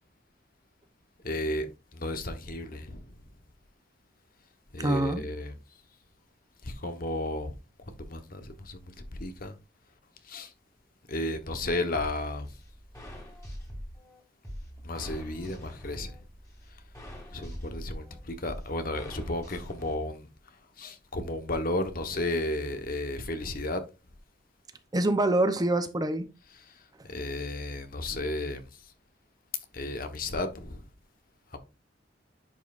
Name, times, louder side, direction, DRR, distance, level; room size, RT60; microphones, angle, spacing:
voice 1, 1.2-1.7 1.9-3.0 4.7-5.5 6.6-7.5 7.9-9.5 10.3-10.5 11.1-12.5 14.8-16.1 17.3-20.3 20.8-23.8 27.1-28.6 29.7-30.8, left 1 dB, 50° left, 1.1 m, -33 dB
voice 2, 4.8-5.2 24.9-26.3, right 1 dB, 20° right, 0.7 m, -25 dB
sound 1, 11.9-19.9, equal, 20° left, 2.6 m, -44 dB
10.5 x 5.3 x 2.5 m
head